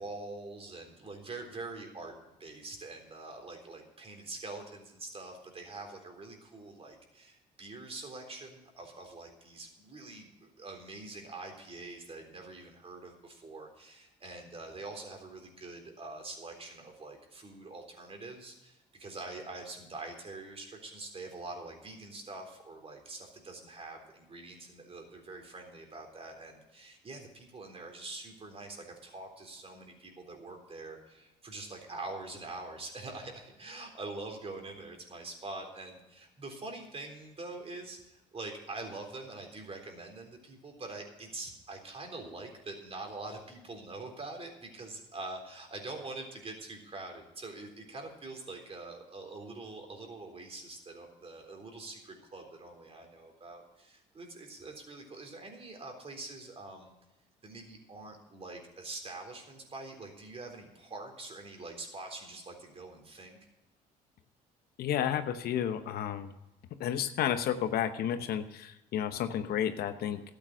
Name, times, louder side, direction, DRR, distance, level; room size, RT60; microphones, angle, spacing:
voice 1, 0.0-2.1 2.4-56.9 57.4-63.4, right 2 dB, 35° right, 3 dB, 3.8 m, -44 dB
voice 2, 64.8-66.3 66.8-70.2, left 10 dB, 70° left, 10 dB, 1.0 m, -31 dB
12.5 x 8.9 x 6.3 m, 0.96 s
supercardioid pair, 70°, 17 cm